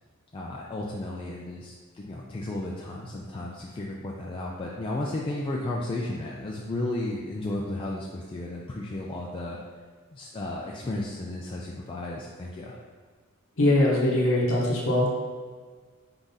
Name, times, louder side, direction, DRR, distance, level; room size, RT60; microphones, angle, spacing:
voice 1, 0.3-9.6 10.1-12.8, left 1 dB, 25° left, -3 dB, 0.3 m, -33 dB
voice 2, 13.6-15.1, left 1 dB, 65° left, -4 dB, 0.8 m, -22 dB
4.7 x 3.8 x 2.7 m, 1.5 s
head